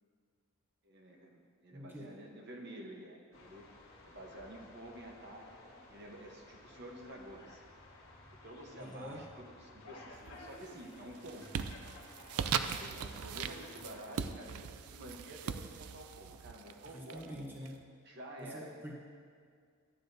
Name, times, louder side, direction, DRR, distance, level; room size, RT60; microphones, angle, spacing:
voice 1, 0.8-3.6 4.0-7.6 8.3-11.8 12.6-17.4 18.0-18.7, right 1 dB, 50° right, 1 dB, 1.0 m, -50 dB
voice 2, 1.7-2.2 8.8-9.2 16.9-17.9 18.4-18.9, equal, 10° right, -2 dB, 0.9 m, -46 dB
sound 1, 3.3-14.0, left 2 dB, 60° left, 1.7 m, -55 dB
sound 2, 10.2-10.7 11.1-17.7, right 7 dB, 75° right, 0.4 m, -40 dB
12.0 x 9.6 x 2.7 m, 2.1 s
head